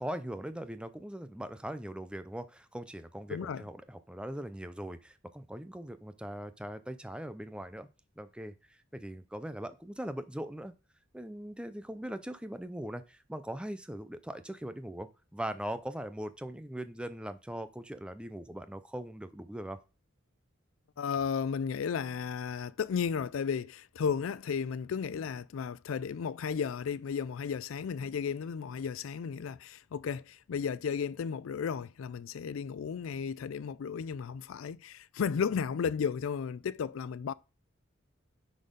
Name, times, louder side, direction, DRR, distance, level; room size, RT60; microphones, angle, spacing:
voice 1, 0.0-7.9 8.2-10.7 11.1-19.8, right 1 dB, 5° right, 0.5 m, -40 dB
voice 2, 3.3-3.6 21.0-37.3, left 6 dB, 75° left, 0.4 m, -34 dB
9.9 x 4.2 x 5.2 m
head